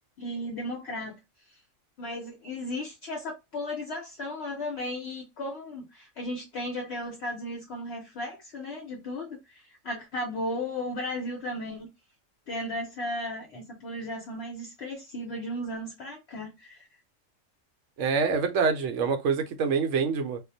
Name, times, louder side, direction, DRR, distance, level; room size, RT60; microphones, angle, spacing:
voice 1, 0.2-1.2 2.0-11.9 12.5-16.9, left 1 dB, 60° left, 0.8 m, -35 dB
voice 2, 18.0-20.4, right 5 dB, 70° right, 0.8 m, -26 dB
2.3 x 2.0 x 2.6 m
omnidirectional pair, 1.4 m